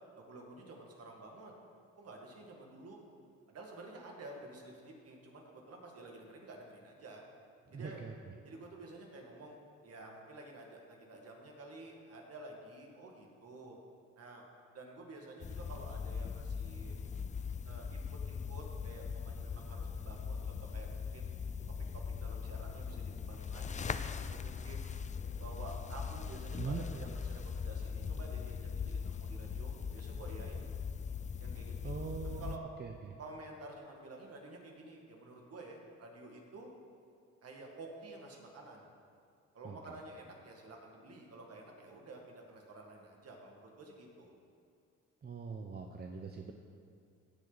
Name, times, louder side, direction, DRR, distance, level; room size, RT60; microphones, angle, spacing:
voice 1, 0.1-1.5 2.0-3.0 3.5-7.3 7.7-8.0 8.4-13.8 14.2-14.4 14.7-17.0 17.6-21.3 21.9-24.8 25.4-30.8 31.4-32.1 32.4-32.6 33.2-36.7 37.4-38.9 39.5-44.4, right 2 dB, 50° right, 0 dB, 2.1 m, -51 dB
voice 2, 7.7-8.3 26.6-26.8 31.8-33.2 39.6-39.8 45.2-46.5, right 5 dB, 30° right, 3 dB, 0.8 m, -42 dB
sound 1, 15.4-32.6, left 6 dB, 25° left, 0.4 m, -40 dB
16.0 x 6.6 x 4.1 m, 2.5 s
cardioid pair, 90°, 30 cm